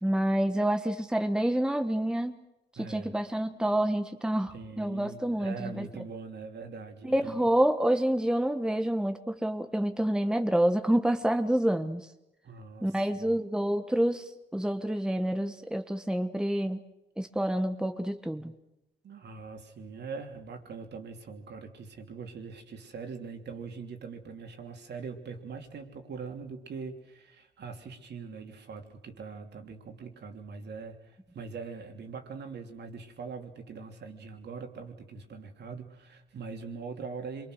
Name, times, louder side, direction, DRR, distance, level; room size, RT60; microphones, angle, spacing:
voice 1, 0.0-2.4 2.7-5.9 7.0-12.1 12.8-16.8 17.2-18.5, right 1 dB, 5° right, 7 dB, 1.2 m, -28 dB
voice 2, 2.8-3.1 4.5-7.5 12.4-13.2 19.0-37.5, right 5 dB, 60° right, 4 dB, 3.1 m, -42 dB
26.0 x 23.5 x 6.5 m, 0.90 s
cardioid pair, 90°, 20 cm